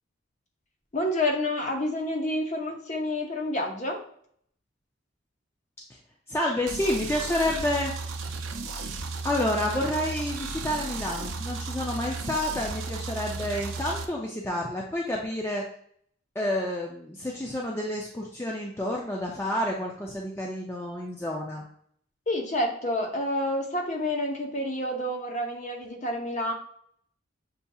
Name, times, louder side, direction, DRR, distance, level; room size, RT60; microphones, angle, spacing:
voice 1, 0.9-4.0 22.3-26.5, left 1 dB, 35° left, 1 dB, 0.8 m, -29 dB
voice 2, 6.3-7.9 9.2-15.6 16.4-21.6, left 1 dB, 10° left, -2 dB, 0.4 m, -29 dB
sound 1, 6.7-14.1, right 3 dB, 85° right, 0.5 m, -34 dB
6.7 x 2.7 x 2.3 m, 0.64 s
head